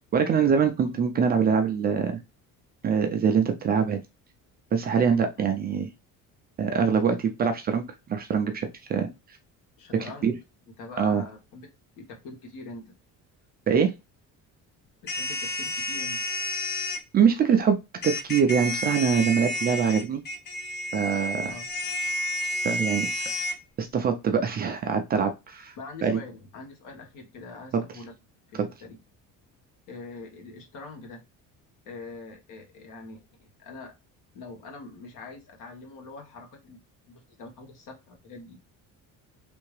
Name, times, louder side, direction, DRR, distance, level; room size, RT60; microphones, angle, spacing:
voice 1, 0.1-2.2 2.8-4.0 4.7-5.9 6.6-9.1 10.2-10.3 11.0-11.2 13.7-13.9 17.1-17.8 18.0-20.2 20.9-21.5 22.6-23.2 23.8-25.7 26.0-26.2 27.7-27.8 28.5-28.7, right 6 dB, 30° right, 6 dB, 0.4 m, -24 dB
voice 2, 9.8-10.4 10.8-11.7 12.0-12.9 15.0-16.2 21.5-21.6 25.8-28.2 28.5-29.0 29.9-31.2 31.8-33.9 34.3-36.8 37.1-38.7, left 3 dB, 65° left, 2 dB, 1.4 m, -43 dB
sound 1, 15.1-17.0 18.0-23.6, left 1 dB, 30° left, 0.6 m, -30 dB
3.4 x 2.7 x 3.1 m, 0.25 s
cardioid pair, 175°, 34 cm